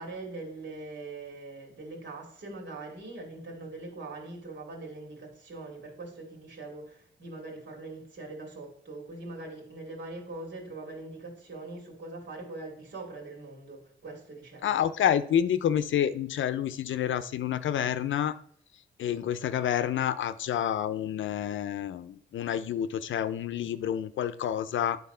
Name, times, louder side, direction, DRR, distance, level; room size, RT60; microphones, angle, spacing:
voice 1, 0.0-14.8, right 2 dB, 70° right, 0 dB, 2.8 m, -42 dB
voice 2, 14.6-18.3 19.0-25.0, left 10 dB, 80° left, 13 dB, 0.5 m, -28 dB
9.5 x 4.0 x 5.5 m, 0.64 s
wide cardioid pair, 120°, 20 cm